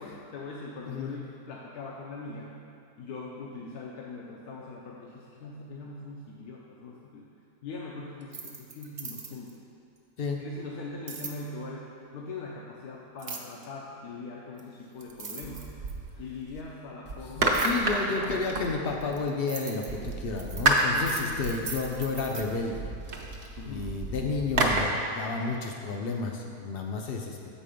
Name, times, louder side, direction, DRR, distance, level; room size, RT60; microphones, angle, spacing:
voice 1, 0.0-2.6 3.0-7.2 7.6-9.6 10.4-11.9 12.1-15.8 16.2-18.6 19.0-19.2 20.9-21.5 23.6-24.0, left 3 dB, 90° left, -3 dB, 1.2 m, -41 dB
sound 1, 8.2-9.5 11.1-11.4 13.2-13.6 14.6-14.7 15.0-16.1 17.5-17.8 18.6-22.4, right 5 dB, 70° right, 0.4 m, -40 dB
sound 2, 15.4-16.6 17.1-19.2 19.9-24.8, right 2 dB, 50° right, 0.9 m, -30 dB
voice 2, 17.3-22.9 23.6-27.5, left 4 dB, 70° left, 1 dB, 0.5 m, -31 dB
7.5 x 5.2 x 5.0 m, 2.5 s
omnidirectional pair, 1.6 m